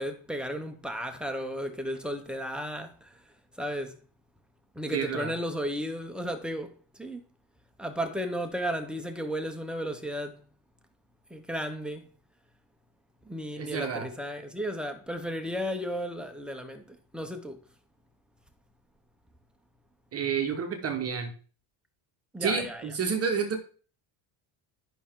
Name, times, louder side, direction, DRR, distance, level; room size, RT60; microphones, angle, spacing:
voice 1, 0.0-2.9 3.6-3.9 4.8-6.7 7.0-7.2 7.8-10.4 11.3-12.0 13.3-16.8 17.1-17.6 22.3-22.8, equal, ahead, 0.6 m, -34 dB
voice 2, 4.9-5.3 13.6-14.1 20.1-21.3 22.4-23.6, right 6 dB, 30° right, 1.2 m, -29 dB
11.0 x 5.8 x 3.6 m
cardioid pair, 160°, 47 cm